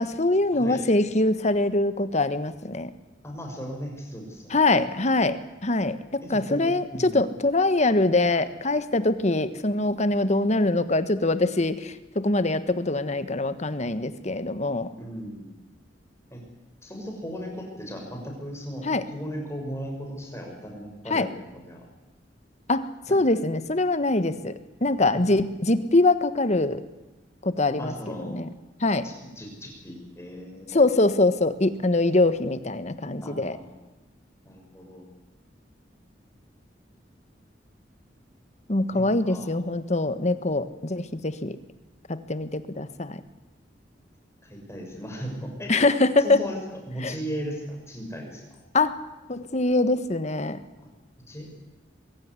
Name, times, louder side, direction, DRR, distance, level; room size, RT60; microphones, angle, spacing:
voice 1, 0.0-2.9 4.5-14.9 18.8-19.1 21.1-21.3 22.7-24.5 24.8-26.8 27.4-27.9 28.2-28.5 28.8-29.1 30.7-33.6 38.7-41.6 42.1-43.2 45.7-46.4 47.0-47.1 48.7-49.0 49.3-50.6, left 2 dB, 40° left, 12 dB, 1.3 m, -23 dB
voice 2, 3.2-4.6 6.2-6.6 6.9-7.2 15.0-15.5 16.3-16.4 16.8-21.8 23.1-23.2 24.8-25.4 27.8-28.4 29.0-30.9 33.2-33.7 34.4-35.0 38.9-39.5 44.4-45.7 46.2-46.6 46.9-48.4 50.8-50.9 51.3-51.5, equal, 15° left, 1 dB, 6.2 m, -37 dB
22.5 x 16.5 x 9.7 m, 1.1 s
head